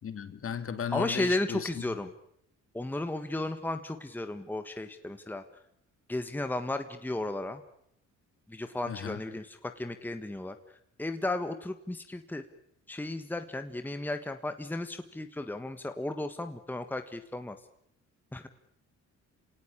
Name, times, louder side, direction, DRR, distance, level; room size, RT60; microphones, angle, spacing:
voice 1, 0.0-1.7 8.9-9.2, left 7 dB, 45° left, 10 dB, 2.5 m, -35 dB
voice 2, 0.9-2.1 2.7-5.4 6.1-7.6 8.5-10.6 11.0-12.4 12.9-17.6 18.3-18.5, left 2 dB, 5° left, 8 dB, 1.4 m, -34 dB
27.5 x 18.0 x 9.8 m, 0.74 s
cardioid pair, 125°, 30 cm